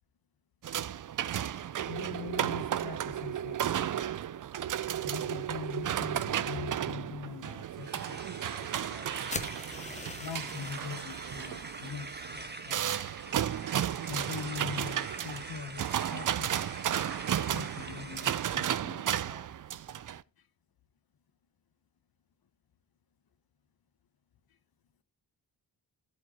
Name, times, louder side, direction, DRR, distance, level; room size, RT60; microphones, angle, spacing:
sound 1, 0.6-20.2, right 10 dB, 50° right, 0.5 m, -34 dB
voice 1, 1.8-3.9 5.0-9.1 10.2-13.1 14.1-16.7 17.0-19.4, left 6 dB, 60° left, 1.1 m, -43 dB
sound 2, 7.8-18.7, right 3 dB, 25° right, 1.4 m, -45 dB
sound 3, 9.3-11.5, left 2 dB, 15° left, 1.1 m, -42 dB
12.0 x 8.4 x 2.9 m
supercardioid pair, 45°, 42 cm